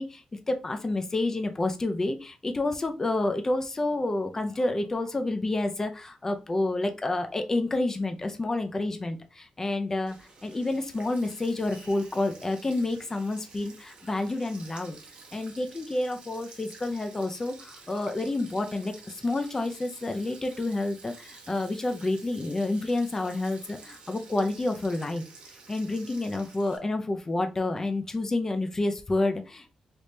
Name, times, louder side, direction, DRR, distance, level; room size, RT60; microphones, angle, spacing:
voice 1, 0.0-15.0 15.3-25.2 25.7-29.7, left 2 dB, 25° left, 6 dB, 0.5 m, -29 dB
Sink (filling or washing), 10.1-26.8, right 4 dB, 65° right, 0.9 m, -50 dB
3.4 x 3.1 x 2.7 m, 0.30 s
cardioid pair, 115°, 2 cm